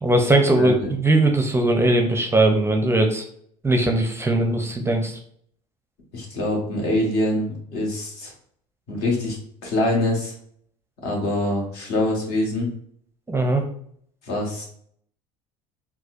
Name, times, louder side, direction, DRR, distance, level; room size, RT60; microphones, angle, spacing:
voice 1, 0.0-3.2 3.6-5.2 13.3-13.6, right 2 dB, 15° right, 4 dB, 0.5 m, -19 dB
voice 2, 0.6-0.9 6.1-8.3 8.9-10.3 11.0-12.7 14.2-14.7, left 1 dB, 65° left, -1 dB, 1.4 m, -24 dB
4.2 x 2.3 x 2.5 m, 0.64 s
supercardioid pair, 85°, 18 cm